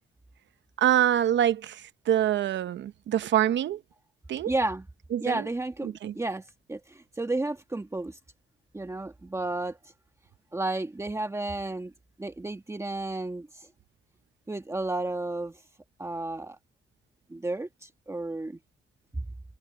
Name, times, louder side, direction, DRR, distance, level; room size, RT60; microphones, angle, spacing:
voice 1, 0.8-3.8 4.3-4.5 5.1-5.4 5.8-6.1, right 11 dB, 65° right, 0.8 m, -25 dB
voice 2, 4.4-4.9 5.2-8.2 8.7-9.9 10.5-11.9 12.2-13.7 14.5-15.6 16.0-16.6 17.3-18.6, right 2 dB, 15° right, 1.7 m, -32 dB
cardioid pair, 90°, 20 cm